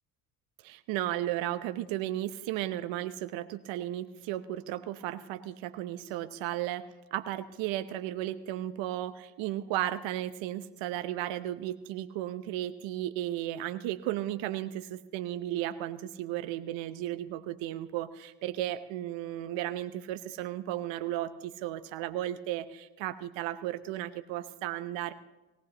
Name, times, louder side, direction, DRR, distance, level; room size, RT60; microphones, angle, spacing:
voice 1, 0.6-25.1, right 13 dB, 65° right, 11 dB, 0.9 m, -34 dB
18.5 x 16.5 x 2.9 m, 1.0 s
hypercardioid pair, 70°, 49 cm